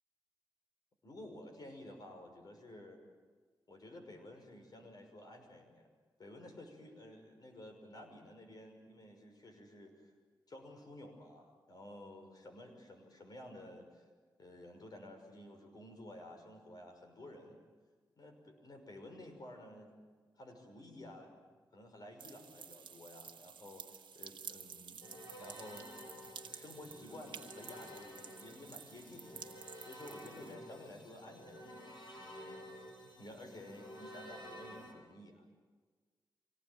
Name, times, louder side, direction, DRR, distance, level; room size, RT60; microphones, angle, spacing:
voice 1, 1.0-3.0 3.7-5.9 6.2-10.1 10.5-14.0 14.4-17.6 18.2-19.9 20.4-21.4 21.7-25.0 25.4-25.9 26.4-29.4 29.8-32.6 33.2-35.5, left 1 dB, 55° left, 4 dB, 6.0 m, -52 dB
sound 1, 22.2-30.5, right 7 dB, 80° right, 1.2 m, -52 dB
sound 2, 25.0-34.9, equal, 70° left, 7.1 m, -52 dB
25.0 x 18.5 x 9.0 m, 1.5 s
cardioid pair, 70°, 8 cm